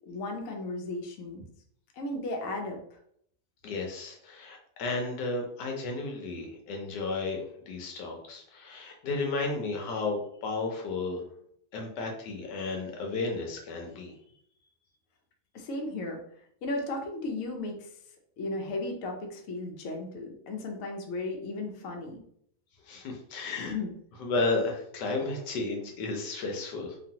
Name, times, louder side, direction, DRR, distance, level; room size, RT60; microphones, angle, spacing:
voice 1, 0.1-1.4 2.0-3.0 15.5-16.2 16.6-17.9 18.4-22.2 23.4-23.9, left 2 dB, 65° left, 2 dB, 0.9 m, -35 dB
voice 2, 3.6-11.2 11.7-14.1 22.9-23.7 24.2-27.0, left 3 dB, 80° left, 2 dB, 1.3 m, -33 dB
3.0 x 2.4 x 2.7 m, 0.68 s
omnidirectional pair, 1.8 m